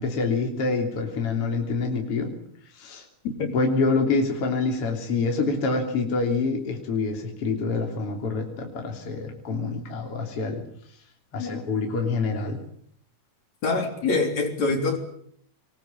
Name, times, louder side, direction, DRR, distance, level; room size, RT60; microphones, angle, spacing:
voice 1, 0.0-2.3 2.7-3.0 3.5-10.6 11.3-12.6, left 4 dB, 50° left, 2 dB, 4.2 m, -26 dB
voice 2, 13.6-15.0, left 3 dB, 65° left, 4 dB, 4.9 m, -24 dB
26.0 x 20.5 x 9.1 m, 0.65 s
omnidirectional pair, 3.3 m